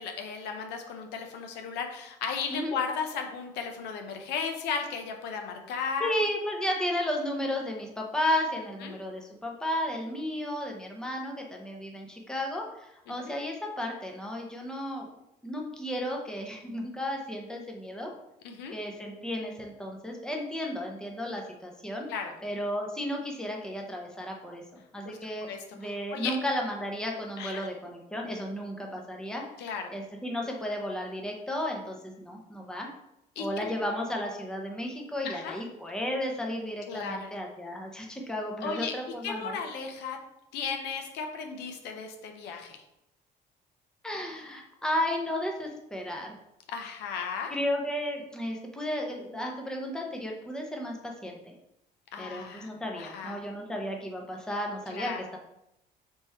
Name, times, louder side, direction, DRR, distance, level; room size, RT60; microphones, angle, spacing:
voice 1, 0.0-6.1 8.8-9.0 13.1-13.3 18.4-18.7 22.1-22.3 25.0-26.4 27.4-27.7 29.6-29.9 33.4-33.7 35.2-35.6 36.9-37.4 38.6-38.9 39.2-40.2 40.5-42.8 46.7-47.5 52.1-52.7 53.0-53.4 54.9-55.2, left 6 dB, 85° left, 4 dB, 0.7 m, -35 dB
voice 2, 6.0-15.1 15.4-18.1 18.7-22.1 22.4-24.6 24.9-29.4 29.9-32.9 33.4-39.6 44.0-46.3 47.5-51.5 52.2-55.4, left 1 dB, 5° left, 0 dB, 0.8 m, -33 dB
3.6 x 3.0 x 4.3 m, 0.84 s
cardioid pair, 110°, 17 cm